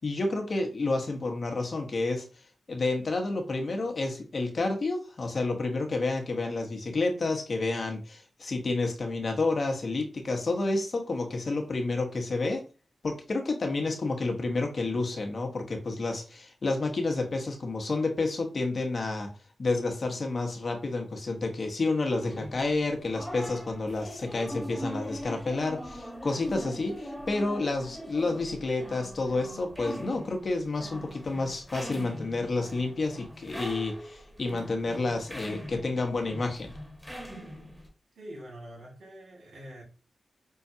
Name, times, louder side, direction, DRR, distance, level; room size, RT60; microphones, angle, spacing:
voice 1, 0.0-2.3 2.7-12.6 13.0-19.3 19.6-36.7, left 3 dB, 60° left, 1.0 m, -30 dB
sound 1, 22.2-37.9, equal, ahead, 1.2 m, -41 dB
voice 2, 38.2-39.8, equal, 80° right, 1.9 m, -45 dB
5.5 x 2.3 x 2.7 m
supercardioid pair, 40°, 0 cm